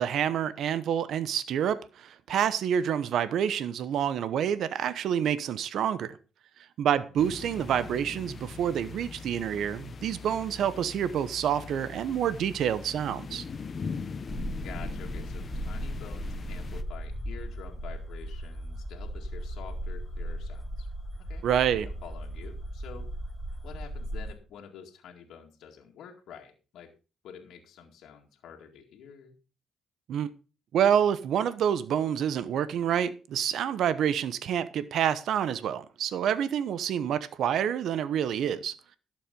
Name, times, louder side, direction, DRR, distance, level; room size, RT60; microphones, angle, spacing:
voice 1, 0.0-6.2 6.8-13.4 21.4-21.9 30.1-30.3 30.7-38.8, right 9 dB, 75° right, 0.9 m, -28 dB
sound 1, 7.2-16.8, left 5 dB, 45° left, 1.1 m, -41 dB
sound 2, 14.3-24.3, right 1 dB, 5° right, 4.0 m, -37 dB
voice 2, 14.6-20.9 21.2-23.1 23.6-26.9 27.2-29.3, left 7 dB, 80° left, 2.1 m, -48 dB
12.0 x 7.5 x 5.2 m
cardioid pair, 90°, 0 cm